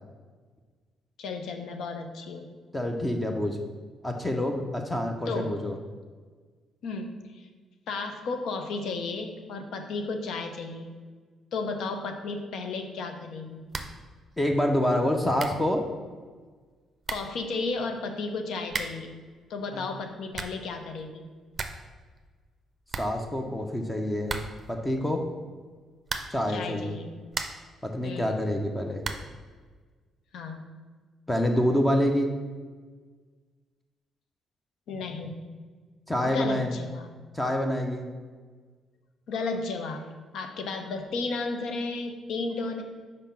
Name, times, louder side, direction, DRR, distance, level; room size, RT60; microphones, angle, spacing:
voice 1, 1.2-2.5 5.3-5.5 6.8-7.5 7.9-10.9 11.5-13.7 17.1-19.2 19.5-21.3 26.5-27.2 28.0-28.4 30.3-30.6 34.9-35.4 36.2-37.1 39.3-42.8, left 3 dB, 75° left, 5 dB, 0.6 m, -33 dB
voice 2, 2.7-3.6 4.0-5.8 14.4-15.8 19.7-19.8 23.0-24.4 24.7-25.2 26.3-26.9 27.8-29.0 31.3-32.3 36.1-36.7 37.3-38.1, left 1 dB, 10° left, 3 dB, 0.6 m, -27 dB
sound 1, 13.7-14.1 14.3-14.4 15.0-15.1 15.4-15.7 16.6-16.7 17.0-17.4 18.7-19.1 20.1-20.7 21.1-21.2 21.3-21.9 22.2-22.3 22.5-22.6 22.9-23.7 24.2-24.8 26.0-26.5 27.0-27.8 29.0-29.4, right 4 dB, 35° right, 0.5 m, -36 dB
5.0 x 3.6 x 5.7 m, 1.5 s
cardioid pair, 90°, 0 cm